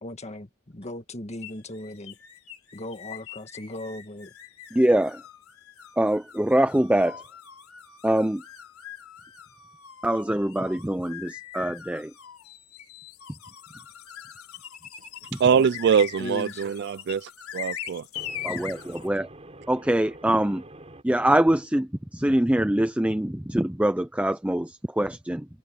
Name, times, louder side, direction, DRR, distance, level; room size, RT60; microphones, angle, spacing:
voice 1, 0.0-2.2 2.7-4.3 15.5-15.7 16.2-16.6, left 1 dB, 30° left, 1.7 m, -37 dB
sound 1, 1.4-19.1, left 9 dB, 90° left, 3.9 m, -42 dB
voice 2, 4.7-5.2 6.0-7.2 8.0-8.4 10.0-12.1 15.3-15.4 18.4-19.3 19.7-20.6 21.0-25.5, right 1 dB, 5° right, 0.6 m, -24 dB
voice 3, 15.4-18.0, right 7 dB, 50° right, 0.3 m, -23 dB
voice 4, 18.1-21.0, right 1 dB, 30° right, 4.1 m, -45 dB
head